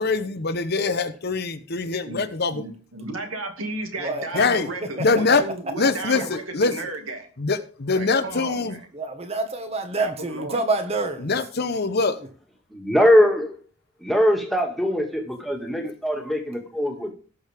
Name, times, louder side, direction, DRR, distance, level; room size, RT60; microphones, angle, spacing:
voice 1, 0.0-2.6 4.3-4.7 5.0-5.4 5.8-6.7 7.4-8.8 11.2-12.2, left 4 dB, 50° left, 1.0 m, -23 dB
voice 2, 2.5-7.3 7.9-8.9 10.0-10.6, right 2 dB, 85° right, 2.3 m, -34 dB
voice 3, 4.0-4.5 5.0-5.1 8.9-11.4, right 3 dB, 30° right, 1.6 m, -27 dB
voice 4, 12.7-13.5 14.0-17.1, equal, ahead, 2.1 m, -21 dB
18.0 x 6.4 x 3.6 m
head